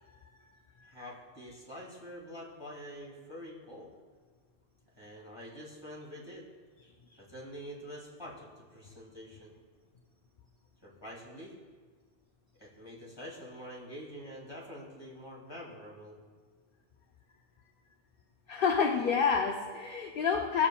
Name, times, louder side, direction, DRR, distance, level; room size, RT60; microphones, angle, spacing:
voice 1, 0.8-3.9 5.0-6.5 7.2-9.6 10.8-11.5 12.6-16.2, equal, 25° left, -4 dB, 2.1 m, -46 dB
voice 2, 18.5-20.7, left 6 dB, 60° left, 4 dB, 0.8 m, -28 dB
17.5 x 7.2 x 2.2 m, 1.5 s
omnidirectional pair, 1.1 m